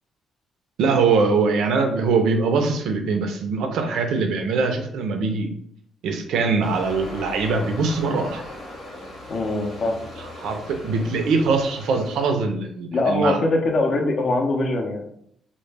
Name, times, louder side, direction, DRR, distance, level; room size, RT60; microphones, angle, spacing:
voice 1, 0.8-5.5 6.0-8.4 10.4-13.4, right 4 dB, 80° right, 5 dB, 0.4 m, -22 dB
sound 1, 6.6-12.3, left 1 dB, 75° left, 0.9 m, -39 dB
voice 2, 9.3-10.0 12.9-15.0, left 2 dB, 55° left, 2 dB, 0.5 m, -22 dB
2.1 x 2.0 x 3.2 m, 0.68 s
cardioid pair, 90°, 0 cm